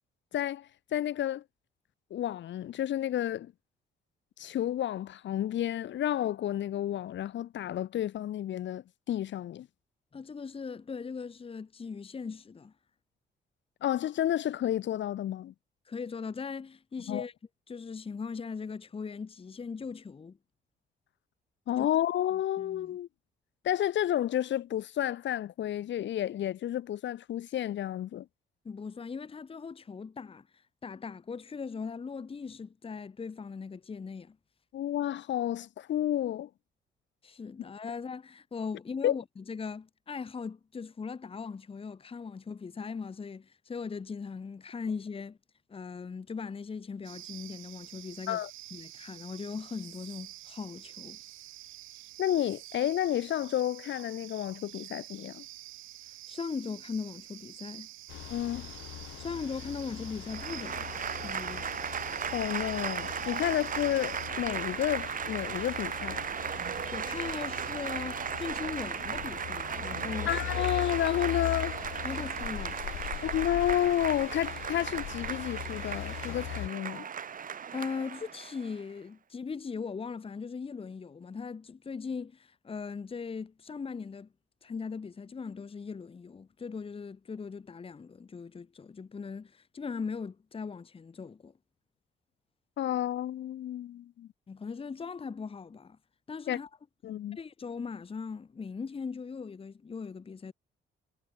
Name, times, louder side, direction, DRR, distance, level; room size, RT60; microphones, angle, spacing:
voice 1, 0.3-1.4 2.1-3.5 4.4-9.7 13.8-15.5 17.1-17.2 21.7-23.1 23.6-28.2 34.7-36.5 39.0-39.2 48.3-48.5 52.2-55.4 58.3-58.7 62.3-66.3 70.3-71.8 73.2-77.1 92.8-94.3 96.5-96.6 97.0-97.4, left 11 dB, 65° left, 1.2 m, -31 dB
voice 2, 10.1-12.7 15.9-17.3 17.7-20.4 21.8-21.9 22.6-23.0 28.6-30.5 30.8-34.4 37.2-45.4 45.7-48.4 48.7-51.2 56.3-57.9 59.2-61.7 63.4-63.5 66.9-70.3 72.0-73.2 77.7-84.3 84.6-91.5 94.5-96.0 96.3-96.7 97.4-100.5, left 5 dB, 30° left, 1.0 m, -39 dB
sound 1, 47.0-64.3, right 16 dB, 90° right, 1.9 m, -48 dB
sound 2, 58.1-76.7, left 16 dB, 85° left, 1.1 m, -41 dB
Applause / Crowd, 60.3-78.8, right 7 dB, 45° right, 1.1 m, -36 dB
cardioid pair, 90°, 20 cm